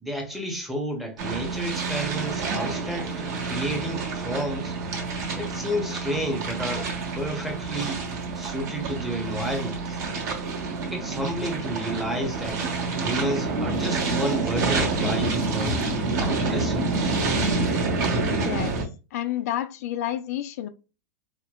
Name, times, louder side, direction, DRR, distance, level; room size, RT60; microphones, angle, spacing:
voice 1, 0.0-4.8 5.4-6.9 7.2-8.0 8.4-10.0 10.9-12.7 13.0-15.8 16.2-17.2, equal, ahead, 0.7 m, -31 dB
sound 1, 1.2-18.8, right 3 dB, 65° right, 1.3 m, -28 dB
voice 2, 18.4-18.8 19.1-20.7, left 12 dB, 60° left, 0.4 m, -29 dB
4.4 x 2.1 x 2.2 m
supercardioid pair, 145°, 9 cm